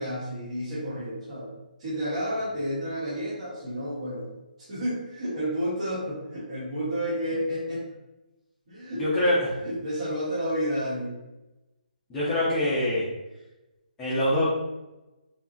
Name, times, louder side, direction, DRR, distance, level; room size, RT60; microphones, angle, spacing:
voice 1, 0.0-1.5 1.8-4.3 4.6-7.8 8.7-9.3 9.6-11.2, equal, 45° right, -8 dB, 1.1 m, -31 dB
voice 2, 9.0-9.4 12.1-13.0 14.0-14.5, left 1 dB, 10° left, -10 dB, 0.5 m, -24 dB
2.9 x 2.3 x 2.5 m, 1.0 s
hypercardioid pair, 165°, 5 cm